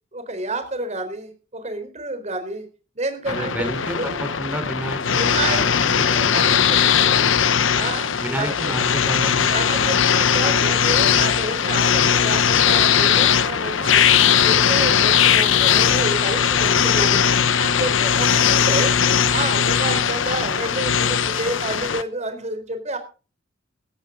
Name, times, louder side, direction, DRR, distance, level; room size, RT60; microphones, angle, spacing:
voice 1, 0.1-2.7 3.0-4.2 5.1-7.3 7.7-8.5 9.5-14.0 14.4-17.3 17.6-18.9 19.3-23.0, right 2 dB, 35° right, 8 dB, 4.1 m, -29 dB
sound 1, 3.3-22.0, left 8 dB, 80° left, 0.9 m, -19 dB
voice 2, 3.3-4.1 4.4-6.7 8.2-9.9, right 1 dB, 10° right, 7 dB, 3.9 m, -31 dB
16.5 x 14.0 x 3.8 m, 0.35 s
head